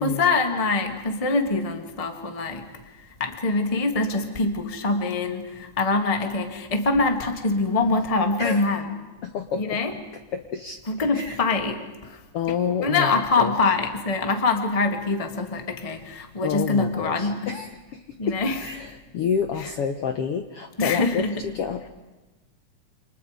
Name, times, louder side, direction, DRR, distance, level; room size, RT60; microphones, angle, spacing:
voice 1, 0.0-2.7 3.2-9.0 9.6-9.9 10.9-12.2 12.8-17.5 18.2-18.6 20.8-21.5, left 3 dB, 20° left, 5 dB, 1.0 m, -24 dB
voice 2, 9.2-9.8 10.3-10.8 11.1-11.4 12.3-13.5 16.4-21.9, left 7 dB, 65° left, 6 dB, 1.5 m, -29 dB
28.5 x 25.5 x 5.1 m, 1.2 s
omnidirectional pair, 3.7 m